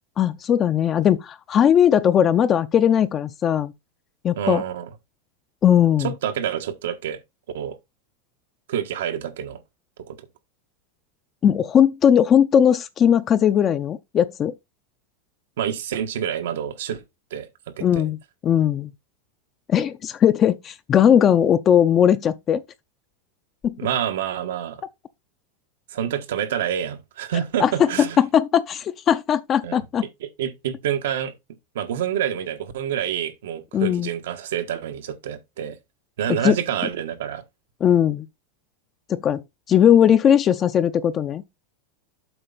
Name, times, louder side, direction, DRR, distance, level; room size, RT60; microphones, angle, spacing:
voice 1, 0.2-3.7 4.2-4.6 5.6-6.1 11.4-14.5 17.8-18.2 18.4-18.9 19.7-22.6 23.6-23.8 27.6-27.7 28.0-30.1 33.7-34.1 36.4-36.6 37.8-38.3 39.1-39.4 39.7-41.4, left 9 dB, 25° left, 0.5 m, -18 dB
voice 2, 4.4-4.9 6.0-7.2 7.5-7.8 8.7-9.6 10.1-10.2 15.6-17.0 17.3-17.5 17.8-18.1 23.8-24.8 25.9-28.2 29.6-29.8 30.2-31.3 31.7-35.8 36.2-37.4, right 9 dB, 85° right, 1.3 m, -27 dB
7.8 x 5.3 x 4.0 m
supercardioid pair, 150°, 0 cm